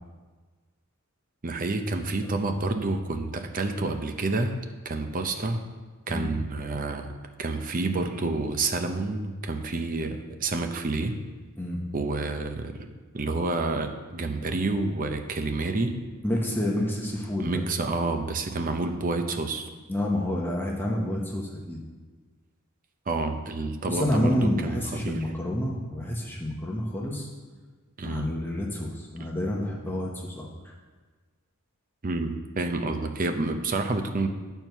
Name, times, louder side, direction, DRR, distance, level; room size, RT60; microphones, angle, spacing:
voice 1, 1.4-4.6 4.8-5.6 6.1-11.2 11.9-12.9 13.1-16.0 17.4-19.7 23.1-25.2 28.0-28.3 32.0-34.3, right 3 dB, 40° right, 6 dB, 0.7 m, -29 dB
voice 2, 16.2-17.6 19.9-21.8 23.9-27.3 28.0-30.7, left 1 dB, 10° left, -2 dB, 0.9 m, -29 dB
8.9 x 4.6 x 6.7 m, 1.4 s
head